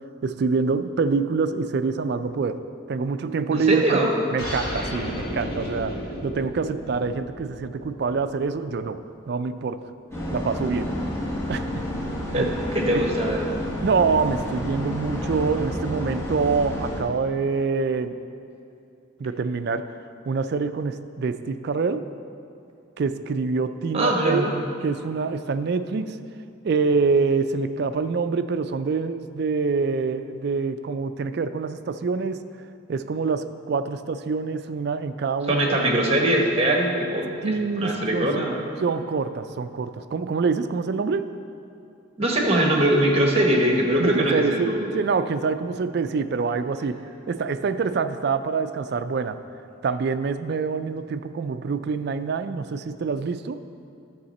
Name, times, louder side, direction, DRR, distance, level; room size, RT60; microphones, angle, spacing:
voice 1, 0.2-2.6 2.9-4.0 4.3-9.8 10.3-11.1 11.5-11.8 12.3-12.5 12.9-13.1 13.8-18.2 19.2-19.9 20.3-22.0 23.0-24.5 24.8-26.2 26.6-32.4 32.9-35.6 37.4-38.4 38.8-41.3 44.0-47.0 47.3-49.4 49.8-53.6, right 4 dB, 50° right, 11 dB, 0.3 m, -26 dB
voice 2, 3.5-4.2 12.3-13.5 23.9-24.5 35.5-37.3 37.8-38.5 42.2-45.0, right 1 dB, 30° right, 0 dB, 1.1 m, -22 dB
sound 1, 4.4-9.4, equal, 45° left, 1.7 m, -34 dB
sound 2, 10.1-17.0, equal, 15° left, 1.1 m, -30 dB
10.5 x 6.6 x 4.2 m, 2.5 s
head